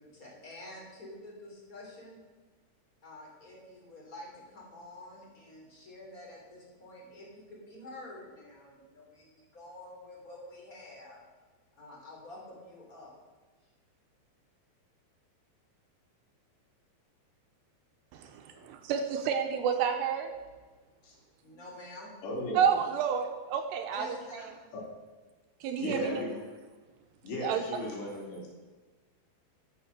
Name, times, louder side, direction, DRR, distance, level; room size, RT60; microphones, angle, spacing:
voice 1, 0.0-2.2 3.0-11.2 11.8-13.1 13.6-13.7 18.5-18.7 21.4-22.1 23.9-24.5, left 1 dB, 20° left, -3 dB, 2.9 m, -48 dB
voice 2, 18.1-20.3 22.5-24.1 24.3-24.4 25.6-26.2 27.4-27.6, right 7 dB, 80° right, 5 dB, 2.8 m, -30 dB
voice 3, 22.2-22.7 24.7-24.8 25.8-26.4 27.2-28.5, left 1 dB, 70° left, -3 dB, 4.8 m, -36 dB
12.5 x 6.7 x 6.7 m, 1.3 s
omnidirectional pair, 5.1 m